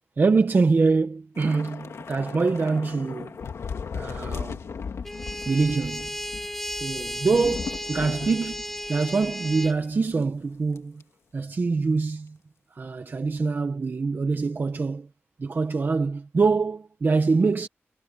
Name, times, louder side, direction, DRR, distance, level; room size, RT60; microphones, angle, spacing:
voice 1, 0.2-3.4 3.9-4.6 5.5-6.2 6.7-8.6 8.9-11.0 11.3-12.4 12.7-15.1 15.4-17.7, right 4 dB, 45° right, 1.1 m, -24 dB
Thunder / Rain, 1.4-9.9 10.2-10.4 10.8-11.0, left 5 dB, 90° left, 1.9 m, -37 dB
sound 1, 5.0-9.7, equal, 5° left, 1.7 m, -34 dB
wide cardioid pair, 130°, 5 cm